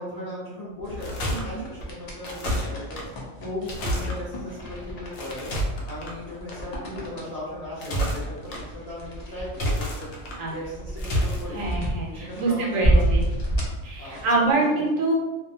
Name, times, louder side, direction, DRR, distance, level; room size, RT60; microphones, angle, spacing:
voice 1, 0.0-3.0 3.4-5.5 5.9-11.8 12.1-13.3 14.0-14.8, left 1 dB, 35° left, -9 dB, 0.8 m, -37 dB
sound 1, 0.8-1.4 2.2-3.0 3.7-4.2 5.1-6.1 7.6-8.6 9.5-10.4 11.0-11.4, equal, 80° left, 1.0 m, -28 dB
sound 2, 0.8-14.5, right 1 dB, 60° left, 0.4 m, -30 dB
voice 2, 1.2-1.6 10.4-10.5 11.5-13.2 13.8-15.1, right 2 dB, 80° right, -2 dB, 1.1 m, -25 dB
2.5 x 2.3 x 2.7 m, 1.1 s
omnidirectional pair, 1.4 m